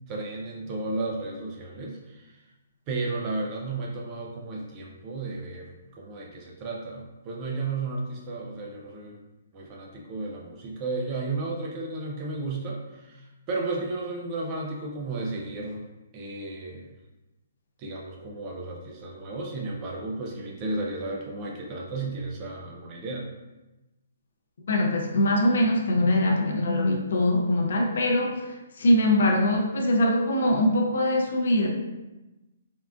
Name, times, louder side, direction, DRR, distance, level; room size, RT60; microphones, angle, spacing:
voice 1, 0.1-2.4 2.9-9.2 9.5-15.8 16.1-16.9 17.8-23.3, right 3 dB, 20° right, -1 dB, 0.3 m, -33 dB
voice 2, 24.7-31.7, left 1 dB, 60° left, 1 dB, 0.5 m, -23 dB
3.5 x 2.3 x 2.3 m, 1.1 s
hypercardioid pair, 175°, 0 cm